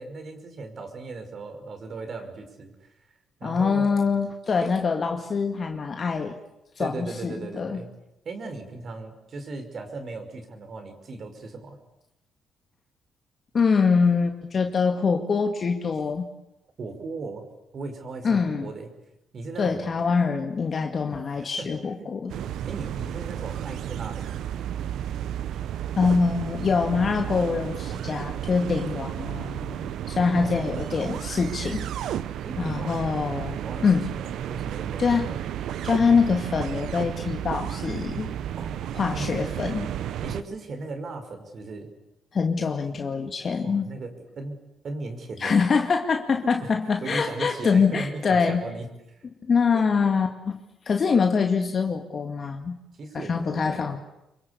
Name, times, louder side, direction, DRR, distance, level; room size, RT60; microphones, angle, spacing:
voice 1, 0.0-2.9 3.4-4.0 4.6-4.7 6.8-7.9 8.3-11.8 16.8-17.4 17.7-18.9 19.3-19.8 21.3-21.7 22.0-22.1 22.4-24.5 30.2-30.6 32.4-33.1 33.6-35.4 38.6-38.8 39.1-39.3 40.2-41.9 43.6-44.6 44.8-45.6 47.0-48.9 49.7-49.8 53.0-54.0, right 3 dB, 50° right, 6 dB, 5.6 m, -37 dB
voice 2, 3.4-6.4 6.8-7.8 13.5-16.3 18.2-18.7 19.6-22.3 25.9-31.9 32.6-33.6 33.8-34.1 35.0-35.3 35.8-38.3 38.9-39.9 42.3-43.9 45.4-48.6 49.4-50.6 50.9-52.8 53.1-54.0, left 5 dB, 45° left, 4 dB, 2.1 m, -24 dB
sound 1, 22.3-40.4, right 11 dB, 80° right, 1.0 m, -32 dB
26.5 x 23.5 x 8.5 m, 0.90 s
cardioid pair, 90°, 0 cm